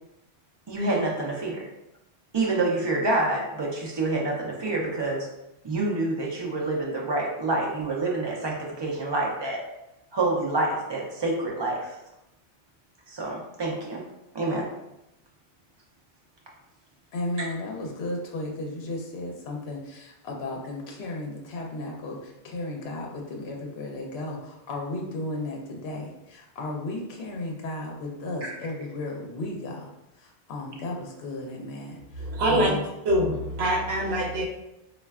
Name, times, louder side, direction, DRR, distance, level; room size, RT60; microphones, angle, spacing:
voice 1, 0.7-1.7 2.3-5.3 5.6-9.6 10.1-11.9 13.1-14.0 14.3-14.7 28.4-28.5, right 2 dB, 45° right, -2 dB, 0.3 m, -27 dB
voice 2, 17.1-32.8, left 2 dB, 70° left, 0 dB, 0.8 m, -34 dB
voice 3, 32.2-32.7 33.0-34.5, right 1 dB, 65° right, -1 dB, 0.9 m, -24 dB
3.1 x 2.4 x 2.3 m, 0.89 s
omnidirectional pair, 1.2 m